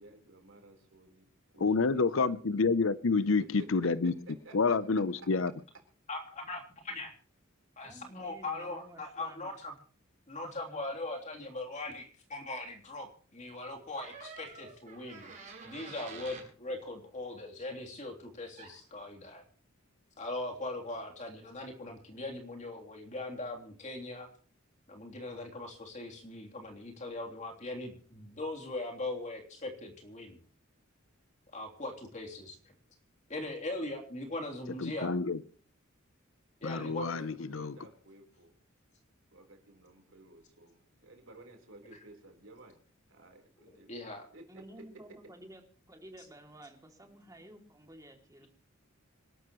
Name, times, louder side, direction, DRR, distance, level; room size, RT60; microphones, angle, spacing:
voice 1, 0.0-2.4 3.4-5.3 36.7-38.5 39.3-42.8 43.1-44.0 44.3-44.8, right 2 dB, 65° right, 4.1 m, -53 dB
voice 2, 1.6-4.1 4.5-5.5 34.8-35.4 36.6-37.7, left 4 dB, 70° left, 0.7 m, -28 dB
voice 3, 6.1-7.1 7.8-9.7 10.3-15.3 15.6-19.4 20.2-24.3 24.9-30.4 31.5-32.6 33.3-35.1 36.6-37.1 43.9-44.3, left 2 dB, 35° left, 3.3 m, -40 dB
voice 4, 7.8-9.5 44.5-45.6 45.9-48.5, right 1 dB, 15° right, 2.7 m, -53 dB
sound 1, 13.9-16.5 18.6-18.8, right 4 dB, 40° right, 6.6 m, -48 dB
26.5 x 12.5 x 3.1 m
head